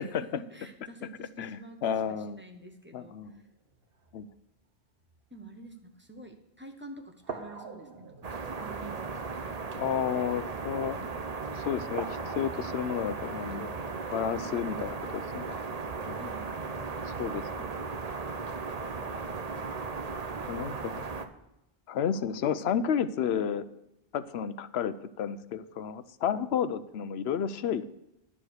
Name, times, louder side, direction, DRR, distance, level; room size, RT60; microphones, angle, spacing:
voice 1, 0.2-1.8 2.1-3.1 5.3-8.1 8.4-9.6 16.1-16.5, right 1 dB, 10° right, 4 dB, 1.2 m, -48 dB
voice 2, 1.4-2.4 2.9-3.4 4.1-4.3 9.8-11.1 11.6-13.7 14.1-15.6 16.1-16.2 17.1-17.5 20.4-21.0 21.9-23.7 24.1-27.8, left 8 dB, 85° left, 14 dB, 0.9 m, -31 dB
sound 1, 3.2-4.5 5.0-5.3 6.1-6.3 7.2-10.8 11.3-11.6 11.9-15.4 16.1-16.2, right 4 dB, 65° right, 1.5 m, -46 dB
sound 2, 8.2-21.3, right 4 dB, 40° right, 0.9 m, -36 dB
11.0 x 7.3 x 6.4 m, 0.89 s
omnidirectional pair, 1.0 m